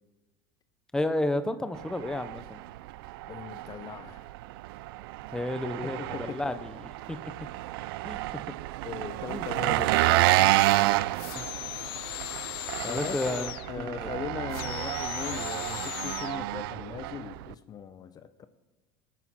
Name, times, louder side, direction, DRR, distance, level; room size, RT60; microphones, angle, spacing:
voice 1, 0.9-2.6 5.3-6.7 7.1-7.2 8.0-8.2 9.3-9.4 11.3-11.4 12.9-14.1, left 1 dB, 5° left, 10 dB, 0.8 m, -31 dB
Engine, 1.7-17.5, right 17 dB, 80° right, 0.4 m, -30 dB
voice 2, 3.2-4.3 5.8-6.6 8.8-10.7 12.8-18.5, left 7 dB, 35° left, 12 dB, 0.7 m, -39 dB
sound 1, 11.1-13.7 14.5-16.4, left 17 dB, 85° left, 0.4 m, -38 dB
20.0 x 9.3 x 4.3 m, 1.2 s
supercardioid pair, 110°, 12 cm